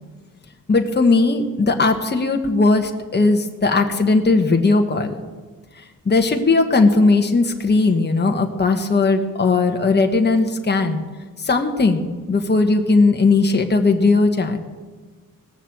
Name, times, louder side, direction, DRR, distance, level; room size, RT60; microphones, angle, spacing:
voice 1, 0.7-5.1 6.0-11.0 11.4-14.6, left 3 dB, 30° left, 4 dB, 1.4 m, -18 dB
18.5 x 6.7 x 7.8 m, 1.4 s
cardioid pair, 85°, 35 cm